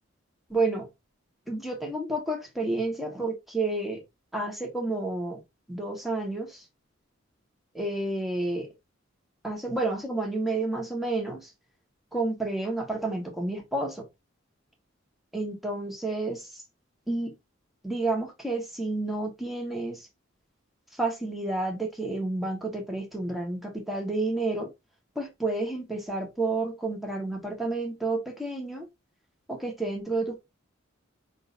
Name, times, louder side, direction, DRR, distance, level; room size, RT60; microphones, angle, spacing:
voice 1, 0.5-0.9 1.5-4.0 4.3-5.4 5.7-6.5 7.7-8.7 9.4-11.4 12.1-13.9 15.3-16.4 17.1-17.3 17.8-20.0 21.0-24.7 25.1-28.9 29.5-30.4, right 2 dB, ahead, 1.5 m, -30 dB
5.4 x 3.8 x 2.6 m
head